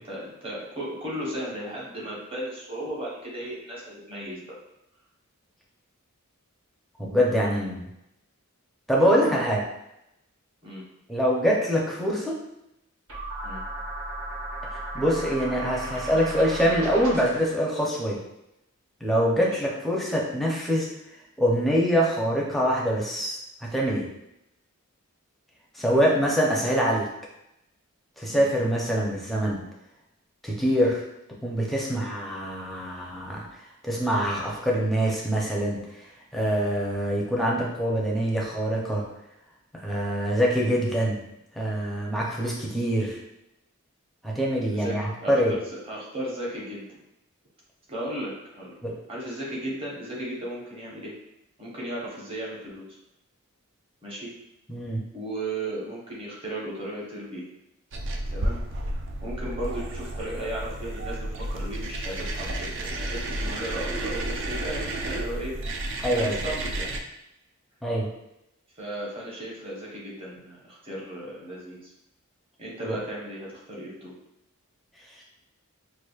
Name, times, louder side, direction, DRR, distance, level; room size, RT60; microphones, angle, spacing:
voice 1, 0.0-4.4 10.6-10.9 13.4-13.7 19.3-19.7 25.8-26.7 28.3-28.5 44.7-47.0 47.9-48.7 49.1-51.2 51.6-53.0 54.0-54.4 55.1-57.5 58.3-58.7 58.9-65.6 66.1-66.9 68.8-71.9 72.6-74.2, right 1 dB, 25° right, -5 dB, 0.9 m, -36 dB
voice 2, 7.0-7.9 8.9-9.6 11.1-12.4 14.9-18.2 19.0-20.9 21.4-24.1 25.7-27.1 28.2-29.6 30.4-31.0 31.4-33.5 33.8-35.8 36.3-39.1 39.8-41.2 41.6-43.2 44.2-45.5 48.8-48.9 54.7-55.1 66.0-66.4 67.8-68.1 72.9-73.0 75.2-75.3, equal, ahead, -4 dB, 0.5 m, -24 dB
sound 1, 13.1-17.5, right 2 dB, 75° right, 1.2 m, -35 dB
sound 2, 57.9-67.0, right 1 dB, 55° right, 0.4 m, -31 dB
4.7 x 2.5 x 2.3 m, 0.85 s
head